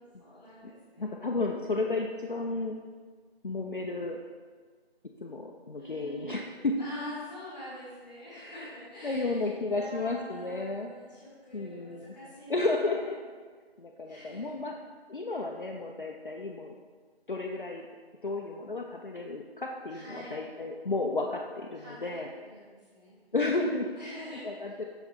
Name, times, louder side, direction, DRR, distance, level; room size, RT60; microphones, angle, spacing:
voice 1, 0.0-1.1 5.7-12.6 12.9-13.0 14.1-14.5 19.9-20.4 21.7-23.1 23.9-24.7, equal, 10° left, -10 dB, 1.5 m, -46 dB
voice 2, 1.0-2.8 3.4-4.2 5.2-6.8 8.3-10.9 11.5-12.1 12.5-13.2 13.8-14.8 15.1-16.7 17.3-17.9 18.2-22.3 23.3-23.9 24.3-24.8, left 3 dB, 55° left, 0 dB, 0.4 m, -32 dB
5.6 x 4.7 x 3.5 m, 1.5 s
figure-of-eight pair, 175°, 32 cm